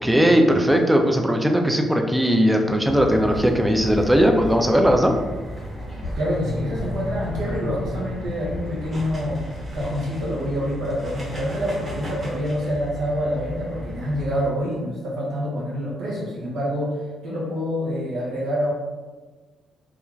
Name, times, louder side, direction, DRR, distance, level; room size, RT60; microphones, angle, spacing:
voice 1, 0.0-5.1, equal, 5° right, 3 dB, 0.4 m, -18 dB
sound 1, 2.8-14.5, equal, 30° right, 0.9 m, -35 dB
sound 2, 3.2-9.8, left 1 dB, 25° left, 1.0 m, -37 dB
voice 2, 6.1-9.4 9.7-18.7, equal, 85° right, -5 dB, 0.7 m, -26 dB
2.4 x 2.3 x 3.1 m, 1.3 s
cardioid pair, 90°, 0 cm